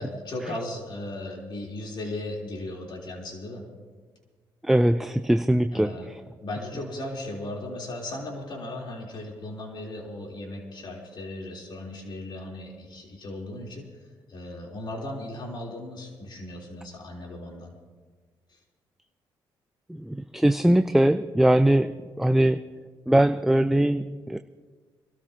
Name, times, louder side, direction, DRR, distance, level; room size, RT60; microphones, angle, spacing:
voice 1, 0.0-3.7 5.7-6.1 6.4-13.9 14.3-17.8, left 1 dB, 55° left, -1 dB, 3.6 m, -36 dB
voice 2, 4.6-6.2 19.9-22.7 23.1-24.4, right 1 dB, 5° right, 9 dB, 0.5 m, -21 dB
25.5 x 13.0 x 2.9 m, 1.5 s
supercardioid pair, 65°, 9 cm